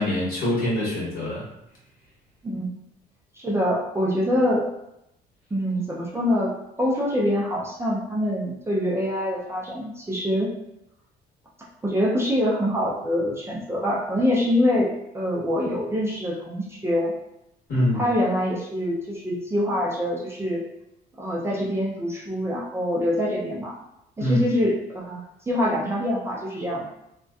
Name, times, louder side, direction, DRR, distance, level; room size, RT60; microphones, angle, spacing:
voice 1, 0.0-1.4 17.7-18.0 24.2-24.5, left 1 dB, 60° left, -6 dB, 1.2 m, -24 dB
voice 2, 2.4-2.8 3.3-4.6 5.5-6.5 6.8-10.5 11.8-17.1 17.9-20.6 21.2-23.8 24.2-26.9, left 1 dB, 15° right, -5 dB, 0.5 m, -25 dB
2.5 x 2.2 x 2.3 m, 0.83 s
cardioid pair, 110°, 17 cm